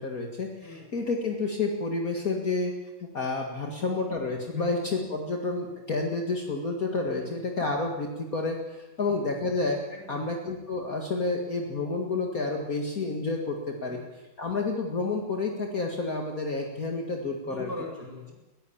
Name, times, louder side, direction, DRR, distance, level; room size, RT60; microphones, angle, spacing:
voice 1, 0.0-2.7 3.1-9.8 10.1-14.0 14.4-17.7, left 3 dB, 45° left, 1 dB, 2.4 m, -30 dB
voice 2, 9.9-10.3 13.9-14.1 17.4-18.3, left 1 dB, 10° right, 1 dB, 7.3 m, -41 dB
20.0 x 16.0 x 8.7 m, 1.1 s
omnidirectional pair, 2.1 m